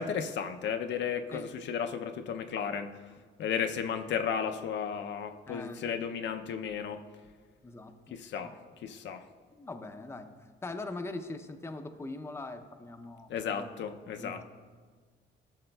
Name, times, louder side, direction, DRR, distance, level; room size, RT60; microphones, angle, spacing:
voice 1, 0.0-2.9 3.4-7.0 8.1-8.5 8.8-9.2 13.3-14.4, left 7 dB, 65° left, 7 dB, 0.5 m, -34 dB
voice 2, 5.5-6.0 7.6-8.2 8.4-8.6 9.5-13.9 14.1-14.4, left 2 dB, 15° left, 7 dB, 0.5 m, -42 dB
13.0 x 6.5 x 2.2 m, 1.5 s
cardioid pair, 90°, 20 cm